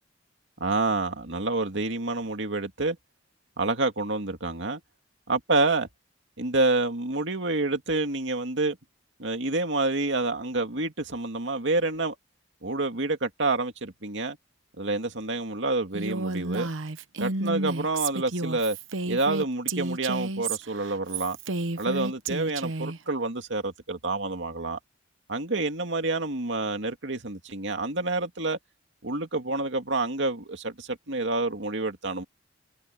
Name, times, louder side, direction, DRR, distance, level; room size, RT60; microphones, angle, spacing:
voice 1, 0.6-3.0 3.6-4.8 5.3-5.9 6.4-8.8 9.2-12.2 12.6-14.4 14.8-16.7 17.2-18.8 19.1-21.4 21.8-24.8 25.3-28.6 29.0-32.2, right 2 dB, 65° right, 2.5 m, -28 dB
Female speech woman speaking, 15.9-23.0, right 2 dB, 90° right, 1.0 m, -31 dB
open air
head